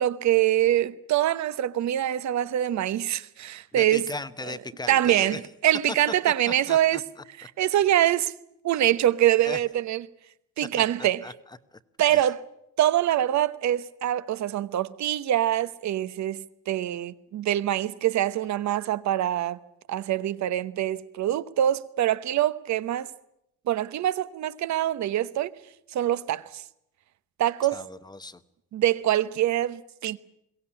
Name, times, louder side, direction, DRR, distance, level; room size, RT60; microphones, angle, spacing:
voice 1, 0.0-4.1 4.5-4.6 4.9-7.0 7.4-8.3 8.6-10.0 10.6-11.2 12.0-12.4 12.8-19.6 19.9-23.1 23.7-25.5 25.9-26.6 27.4-27.9 28.7-30.2, right 12 dB, 55° right, 1.0 m, -24 dB
voice 2, 3.7-5.4 6.5-7.0 9.4-9.6 10.8-11.3 12.1-12.3 27.7-28.4, left 3 dB, 10° left, 1.0 m, -37 dB
22.5 x 17.0 x 10.0 m
cardioid pair, 120°, 34 cm